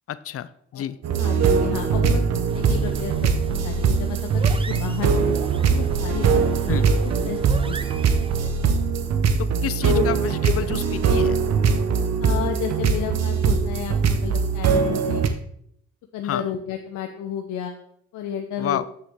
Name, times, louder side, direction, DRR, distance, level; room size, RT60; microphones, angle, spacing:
voice 1, 0.1-1.0 6.7-6.9 9.4-11.4 16.2-16.5 18.6-18.9, left 11 dB, 50° left, 15 dB, 0.5 m, -29 dB
sound 1, 1.0-15.3, right 5 dB, 60° right, 0.9 m, -21 dB
voice 2, 1.2-2.2 2.5-6.5 7.0-8.2 9.8-10.2 12.2-15.3 16.1-17.8 18.1-18.9, left 9 dB, 80° left, 4 dB, 0.8 m, -32 dB
sound 2, 2.5-8.5, right 4 dB, 20° right, 0.5 m, -36 dB
7.3 x 6.7 x 3.6 m, 0.70 s
cardioid pair, 90°, 30 cm